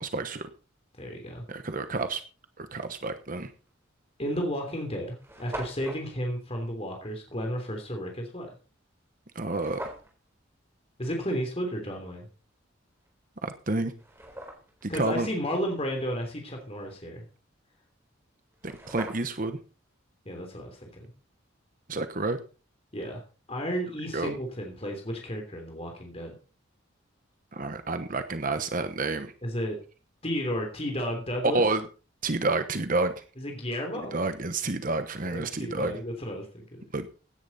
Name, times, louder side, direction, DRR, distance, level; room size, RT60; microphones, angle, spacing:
voice 1, 0.0-0.5 1.5-2.2 2.6-3.5 9.3-9.8 13.4-13.9 14.8-15.3 18.6-19.6 21.9-22.4 24.1-24.4 27.5-29.3 31.5-31.8 32.2-33.2 34.0-36.0 36.9-37.1, right 3 dB, 45° right, 9 dB, 1.1 m, -29 dB
voice 2, 1.0-1.4 4.2-8.5 11.0-12.3 14.9-17.2 20.2-21.1 22.9-23.2 23.5-26.3 29.4-29.8 30.2-31.6 33.4-34.2 34.8-35.0 35.2-36.9, equal, 30° left, 2 dB, 3.1 m, -33 dB
sound 1, 3.7-3.9 4.6-4.7 4.9-5.0 5.2-6.0 9.5-10.1 13.1-13.2 13.7-14.9 18.2-18.3 18.5-19.5, right 1 dB, 10° right, 3.9 m, -41 dB
16.5 x 10.5 x 4.2 m, 0.36 s
head